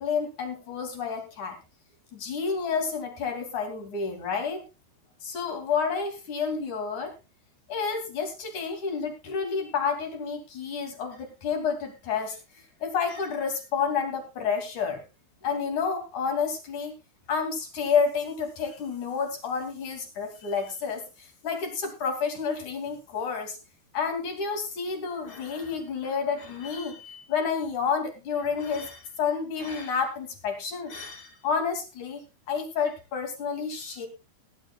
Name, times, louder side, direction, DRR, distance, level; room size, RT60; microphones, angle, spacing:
voice 1, 0.0-1.6 2.1-4.6 5.2-7.1 7.7-12.4 12.8-15.0 15.4-16.9 17.3-23.6 23.9-32.2 32.5-34.1, left 6 dB, 45° left, 4 dB, 3.6 m, -30 dB
21.0 x 11.5 x 2.4 m, 0.27 s
omnidirectional pair, 5.6 m